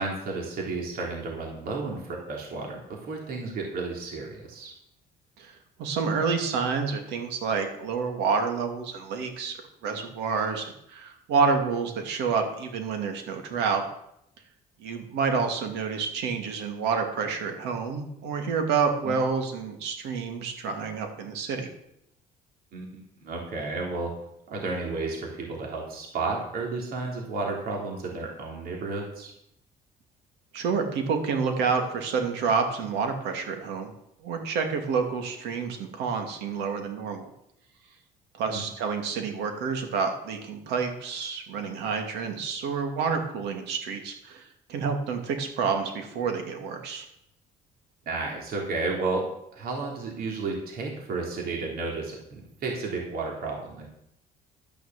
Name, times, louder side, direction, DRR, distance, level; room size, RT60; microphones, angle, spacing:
voice 1, 0.0-4.7 19.0-19.2 22.7-24.2 24.5-29.3 38.5-38.7 48.0-53.9, right 3 dB, 65° right, -1 dB, 3.3 m, -32 dB
voice 2, 5.4-9.6 9.8-13.8 14.8-21.7 30.5-33.9 34.2-37.3 38.3-47.0, right 5 dB, 85° right, 4 dB, 2.5 m, -28 dB
12.5 x 6.6 x 7.5 m, 0.76 s
cardioid pair, 110°, 17 cm